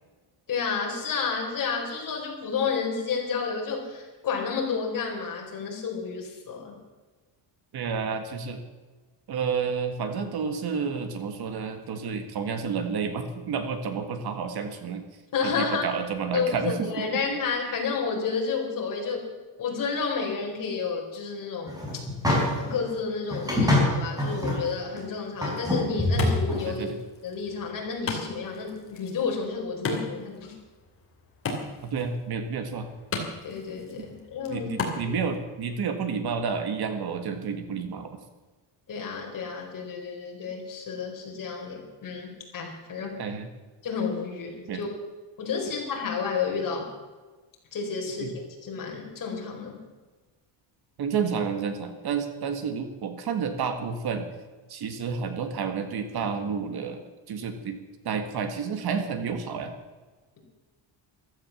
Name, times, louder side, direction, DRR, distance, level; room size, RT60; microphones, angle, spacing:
voice 1, 0.5-6.8 15.3-15.9 16.3-19.3 19.6-22.0 22.6-26.9 27.2-30.5 33.4-34.7 35.1-35.2 38.9-43.2 43.8-44.9 45.4-46.9 47.7-48.3 48.6-49.8, left 5 dB, 45° left, 0 dB, 4.7 m, -31 dB
voice 2, 7.7-8.6 9.3-15.0 15.4-17.2 26.7-27.0 31.8-32.9 34.5-38.2 43.2-43.5 44.7-44.8 48.2-48.3 51.0-54.3 54.7-57.8 58.1-59.7, right 6 dB, 50° right, 8 dB, 1.8 m, -30 dB
sound 1, 21.7-22.8 23.3-24.6 25.0-25.1 25.4-26.6, left 1 dB, 10° right, 5.3 m, -25 dB
Wood, 25.4-35.4, left 3 dB, 30° left, 3.0 m, -37 dB
15.0 x 13.0 x 7.2 m, 1.3 s
cardioid pair, 170°, 47 cm